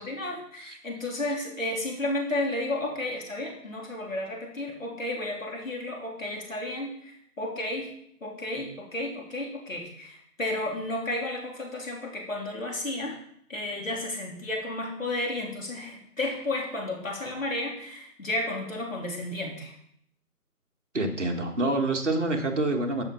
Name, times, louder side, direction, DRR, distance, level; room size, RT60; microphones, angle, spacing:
voice 1, 0.0-7.9 8.2-13.2 13.5-19.7, left 2 dB, 55° left, -1 dB, 3.5 m, -32 dB
voice 2, 20.9-23.0, right 2 dB, 50° right, 1 dB, 1.8 m, -27 dB
14.5 x 5.6 x 5.7 m, 0.68 s
figure-of-eight pair, 180°, 47 cm